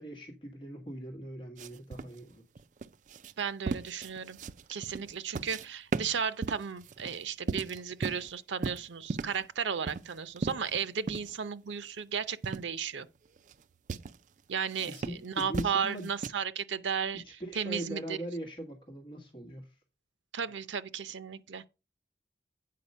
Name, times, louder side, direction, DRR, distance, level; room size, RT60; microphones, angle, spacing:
voice 1, 0.0-2.4 14.9-16.1 17.2-19.8, right 1 dB, 25° left, 1.5 m, -41 dB
sound 1, 1.6-5.7 5.9-8.3 8.6-9.4 9.9-11.3 11.7-11.8 12.4-12.7 13.2-13.5 13.9-14.2 14.7-16.3, right 4 dB, 40° right, 0.3 m, -37 dB
voice 2, 3.4-4.4 4.7-13.1 14.5-17.2 17.5-18.2 20.3-21.6, right 7 dB, 90° right, 0.6 m, -34 dB
8.5 x 5.0 x 5.4 m
head